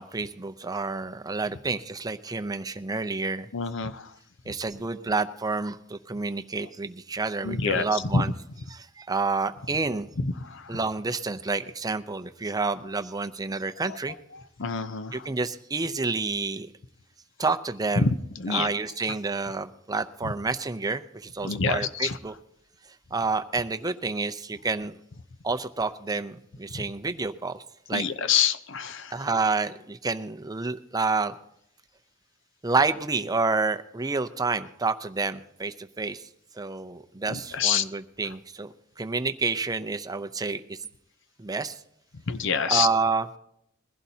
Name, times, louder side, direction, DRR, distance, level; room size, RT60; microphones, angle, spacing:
voice 1, 0.0-3.5 4.5-8.3 8.7-10.1 10.7-14.2 15.1-16.7 17.4-18.1 18.5-22.3 23.1-24.9 25.4-27.6 27.9-28.0 29.1-31.3 32.6-36.2 36.6-40.8 41.4-41.8 42.7-43.3, right 3 dB, 20° right, 9 dB, 0.6 m, -29 dB
voice 2, 3.5-4.1 7.4-8.3 10.2-10.8 13.9-14.0 14.3-15.3 18.0-18.7 20.2-20.3 21.4-22.2 26.7-26.9 27.9-29.2 37.3-37.9 38.2-38.3 42.3-42.9, left 5 dB, 65° left, 12 dB, 0.7 m, -27 dB
21.5 x 16.0 x 2.8 m, 0.75 s
head